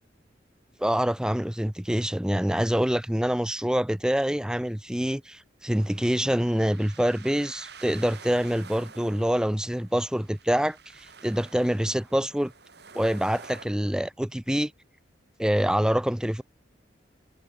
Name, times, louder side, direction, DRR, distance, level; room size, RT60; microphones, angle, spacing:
voice 1, 0.8-12.5 12.9-14.7 15.4-16.4, equal, 5° right, 0.5 m, -26 dB
sound 1, 5.7-13.7, right 5 dB, 60° right, 4.7 m, -49 dB
head